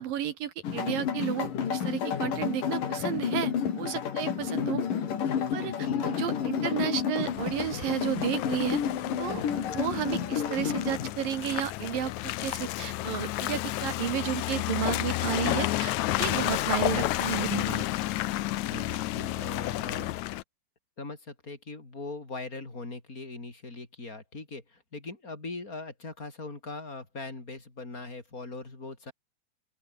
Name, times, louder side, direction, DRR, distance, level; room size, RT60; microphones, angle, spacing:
voice 1, 0.0-4.9 5.5-8.8 9.2-17.9 18.7-18.8, right 10 dB, 70° right, 3.1 m, -33 dB
sound 1, 0.6-11.1, left 8 dB, 60° left, 4.2 m, -30 dB
Car passing by / Engine, 7.2-20.4, left 16 dB, 80° left, 1.7 m, -31 dB
voice 2, 18.7-20.1 21.0-29.1, left 3 dB, 20° left, 5.0 m, -41 dB
open air
omnidirectional pair, 4.3 m